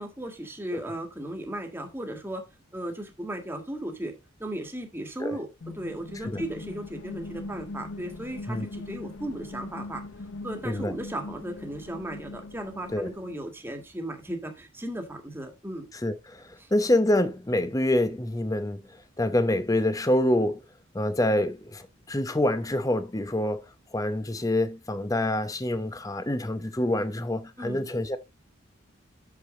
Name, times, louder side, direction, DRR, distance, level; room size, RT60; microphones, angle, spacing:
voice 1, 0.0-2.4 2.7-4.1 4.4-10.0 10.4-15.9 16.6-16.7 27.6-27.9, right 1 dB, 10° right, 1.7 m, -36 dB
sound 1, 5.6-13.4, left 2 dB, 80° left, 0.9 m, -41 dB
voice 2, 16.0-18.8 19.2-20.6 20.9-23.6 23.9-28.2, left 1 dB, 15° left, 0.8 m, -26 dB
8.3 x 6.7 x 3.7 m
head